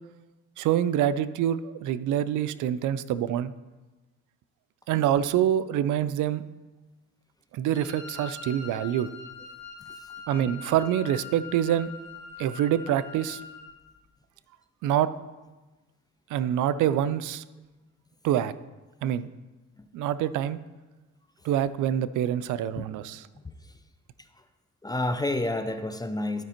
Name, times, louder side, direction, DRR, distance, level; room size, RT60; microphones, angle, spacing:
voice 1, 0.6-3.5 4.9-6.4 7.5-9.1 10.3-11.9 12.4-13.4 14.8-15.1 16.3-17.4 18.2-18.5 19.0-19.3 19.9-20.6 21.4-23.3, right 10 dB, 80° right, 15 dB, 0.5 m, -26 dB
Wind instrument woodwind instrument, 7.7-13.7, left 4 dB, 85° left, 1.8 m, -43 dB
voice 2, 24.8-26.4, left 2 dB, 15° left, 8 dB, 0.6 m, -29 dB
12.5 x 5.0 x 4.4 m, 1.2 s
cardioid pair, 90°, 30 cm